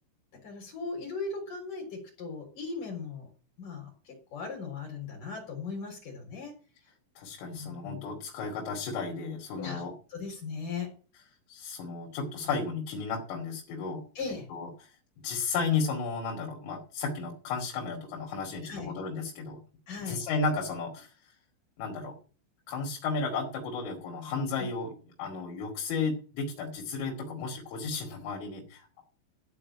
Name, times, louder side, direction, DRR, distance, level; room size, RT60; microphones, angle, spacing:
voice 1, 0.4-3.3 3.6-6.5 7.5-8.0 9.6-9.8 10.1-10.9 14.2-14.5 18.6-18.9 19.9-20.2 24.6-24.7, left 4 dB, 45° left, -1 dB, 5.2 m, -38 dB
voice 2, 7.2-9.9 11.5-14.0 14.5-14.7 15.2-19.6 20.1-21.1 21.8-22.2 22.7-24.9 25.2-28.9, left 4 dB, 80° left, 0 dB, 5.0 m, -33 dB
14.0 x 5.1 x 8.6 m, 0.37 s
omnidirectional pair, 5.7 m